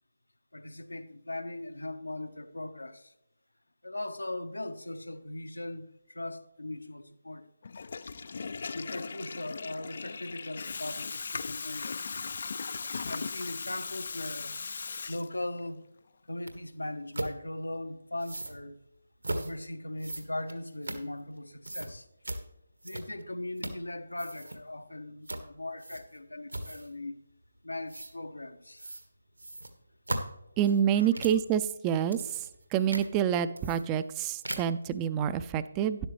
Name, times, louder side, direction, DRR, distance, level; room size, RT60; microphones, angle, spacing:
voice 1, 0.5-3.1 3.8-7.5 8.7-12.2 13.1-14.6 15.1-15.8 16.3-18.8 19.3-22.1 22.8-27.2 27.6-28.9 30.9-31.1, left 1 dB, 75° left, 1.0 m, -39 dB
Water tap faucet / Toilet flush, 7.6-15.7, left 5 dB, 50° left, 0.4 m, -38 dB
sound 1, 16.5-16.6 17.1-17.3 18.2-18.6 19.2-19.5 20.0-21.4 21.6-21.9 22.2-22.4 22.8-23.2 23.6-23.9 24.1-24.6 25.3-25.5 25.8-26.2 26.5-26.9 27.9-28.1 28.8-29.1 29.4-31.4 31.9-32.6 32.9-33.1 33.6-34.2 34.4-34.8, right 1 dB, 75° right, 1.6 m, -38 dB
voice 2, 30.6-32.2 32.7-36.0, right 9 dB, 15° right, 0.4 m, -27 dB
12.5 x 11.0 x 3.2 m
figure-of-eight pair, 150°, 0 cm